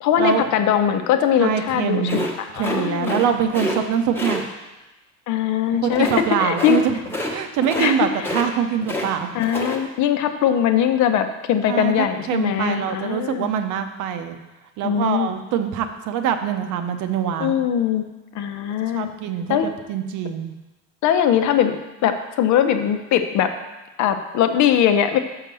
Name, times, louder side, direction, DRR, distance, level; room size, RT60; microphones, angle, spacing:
voice 1, 0.0-3.3 5.3-6.1 6.4-6.8 7.8-8.1 9.3-13.5 14.8-15.3 17.4-18.1 18.3-19.1 19.5-19.7 21.0-21.8 22.0-23.5 24.0-25.2, left 9 dB, 70° left, 8 dB, 0.8 m, -21 dB
voice 2, 1.4-2.3 2.6-4.4 5.8-7.0 7.3-9.4 11.7-11.9 12.3-14.4 14.8-17.6 18.9-20.5, right 8 dB, 85° right, 7 dB, 0.9 m, -24 dB
sound 1, 2.1-3.3 3.5-3.8 4.1-4.4 5.9-6.2 6.6-6.8 7.0-7.3 7.6-9.1 9.4-9.8, left 1 dB, 5° left, 1.0 m, -27 dB
6.4 x 5.9 x 6.8 m, 1.1 s
cardioid pair, 175°, 30 cm